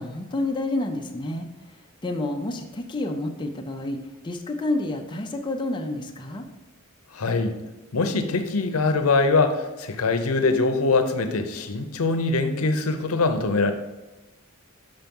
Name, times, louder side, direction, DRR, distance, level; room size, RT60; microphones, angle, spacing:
voice 1, 0.0-1.5 2.0-4.0 4.2-6.5, left 2 dB, 20° left, 2 dB, 0.5 m, -29 dB
voice 2, 7.1-7.5 7.9-13.7, left 3 dB, 75° left, 7 dB, 0.7 m, -23 dB
5.8 x 5.5 x 5.3 m, 1.1 s
head